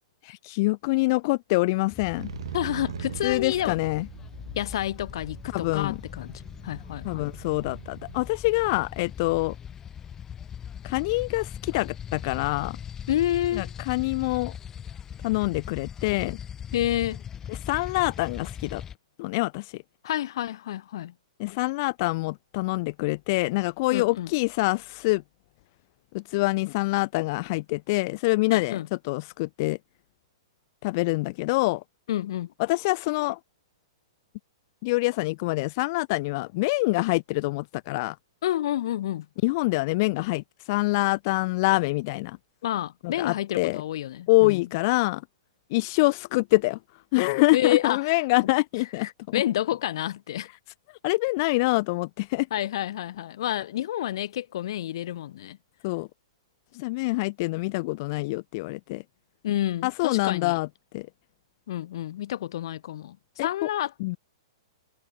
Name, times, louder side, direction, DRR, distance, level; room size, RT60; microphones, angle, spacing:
voice 1, 0.2-2.3 3.2-4.1 5.5-6.0 7.0-9.6 10.8-12.8 13.5-14.5 15.2-16.4 17.5-18.8 19.2-19.8 21.4-25.2 26.1-28.8 29.1-29.8 30.8-31.8 32.6-33.4 34.8-38.2 39.4-42.4 43.0-43.8 44.3-45.2 45.7-46.8 47.1-49.1 51.0-52.5 55.8-56.1 56.7-59.0 59.8-60.7 60.9-61.1 63.4-63.7 64.0-64.2, left 23 dB, 40° left, 0.6 m, -25 dB
sound 1, 1.9-19.0, left 8 dB, 15° left, 1.7 m, -40 dB
Motorcycle, 2.2-8.3, right 9 dB, 75° right, 1.4 m, -42 dB
voice 2, 2.5-3.8 4.5-7.2 13.1-13.7 16.7-17.2 20.0-21.1 23.9-24.3 28.5-28.9 32.1-32.5 38.4-39.3 42.6-44.7 47.5-48.1 49.0-50.5 52.5-55.6 59.4-60.5 61.7-64.2, left 12 dB, 60° left, 1.1 m, -29 dB
hypercardioid pair, 155°, 3 cm